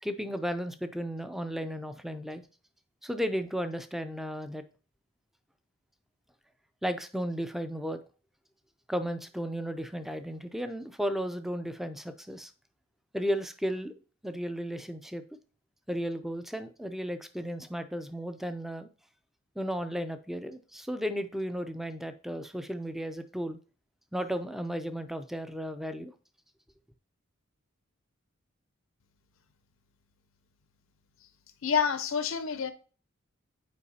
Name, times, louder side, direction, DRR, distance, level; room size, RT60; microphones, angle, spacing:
voice 1, 0.0-2.4 3.0-4.6 6.8-8.0 8.9-12.5 13.1-13.9 14.2-15.2 15.9-18.9 19.6-23.6 24.1-26.1, equal, ahead, 0.4 m, -34 dB
voice 2, 31.6-32.7, left 7 dB, 70° left, 0.6 m, -28 dB
8.3 x 4.9 x 2.8 m
head